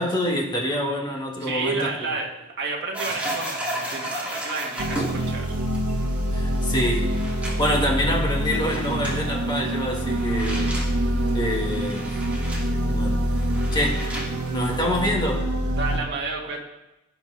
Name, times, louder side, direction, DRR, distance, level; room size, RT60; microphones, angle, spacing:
voice 1, 0.0-1.9 6.3-7.1 7.4-10.8 11.3-12.2 12.9-13.2 13.7-14.0 14.5-15.5, left 1 dB, 20° left, -1 dB, 1.8 m, -26 dB
voice 2, 1.4-5.5 10.5-10.7 15.7-16.6, right 3 dB, 50° right, -2 dB, 2.2 m, -31 dB
sound 1, 2.9-14.8, right 1 dB, 5° right, 2.8 m, -35 dB
sound 2, 4.8-16.0, right 1 dB, 70° right, 1.3 m, -25 dB
17.5 x 6.8 x 3.5 m, 0.95 s
head